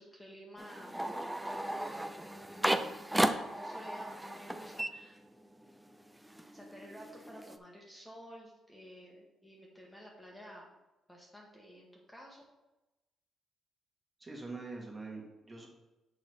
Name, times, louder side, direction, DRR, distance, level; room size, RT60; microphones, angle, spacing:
voice 1, 0.0-3.0 3.5-5.2 6.5-10.7 11.1-12.4, equal, 10° left, -2 dB, 1.4 m, -52 dB
sound 1, 0.6-5.7 6.0-7.6, right 1 dB, 5° right, 0.4 m, -35 dB
voice 2, 14.2-15.7, right 3 dB, 25° right, -1 dB, 1.9 m, -44 dB
6.6 x 4.0 x 4.6 m, 0.99 s
cardioid pair, 90°, 0 cm